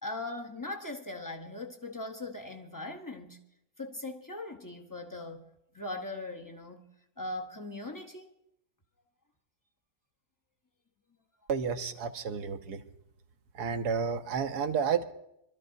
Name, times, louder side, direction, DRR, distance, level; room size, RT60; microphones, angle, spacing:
voice 1, 0.0-3.4 3.8-6.9 7.2-8.3, left 2 dB, 20° left, 0.6 m, -40 dB
voice 2, 11.5-12.8 13.6-15.0, right 6 dB, 85° right, 1.4 m, -31 dB
25.0 x 13.0 x 2.6 m
omnidirectional pair, 1.7 m